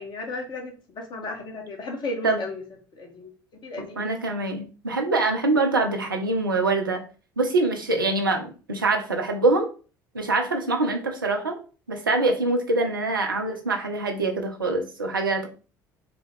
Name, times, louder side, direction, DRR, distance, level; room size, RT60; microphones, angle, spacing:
voice 1, 0.0-2.6 2.9-3.3 3.6-4.0 13.3-13.6, left 2 dB, 45° left, 1.3 m, -34 dB
voice 2, 3.8-7.0 7.4-9.7 10.1-11.6 11.9-15.5, right 2 dB, 90° right, 0.6 m, -24 dB
3.8 x 2.3 x 3.4 m
figure-of-eight pair, 60°, 11 cm